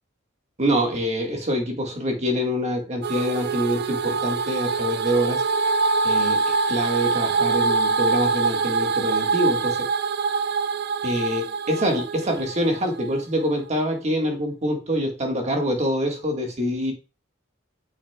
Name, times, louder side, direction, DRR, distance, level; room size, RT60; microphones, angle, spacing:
voice 1, 0.6-5.4 6.0-9.9 11.0-16.9, equal, 35° right, 2 dB, 1.7 m, -25 dB
sound 1, 3.0-13.2, right 4 dB, 55° right, 0.5 m, -24 dB
9.3 x 6.3 x 2.3 m, 0.31 s
head